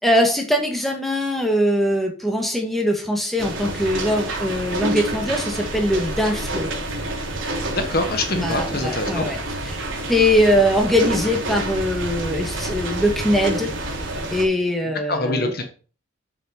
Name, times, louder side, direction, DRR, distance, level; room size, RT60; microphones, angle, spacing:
voice 1, 0.0-6.7 8.4-9.4 9.6-9.8 10.1-13.7 14.3-15.5, equal, ahead, 1 dB, 2.1 m, -21 dB
sound 1, 3.4-14.4, right 1 dB, 85° right, 3.3 m, -28 dB
voice 2, 7.7-9.3 15.1-15.6, left 2 dB, 50° left, 5 dB, 1.5 m, -24 dB
8.1 x 6.9 x 5.2 m, 0.39 s
head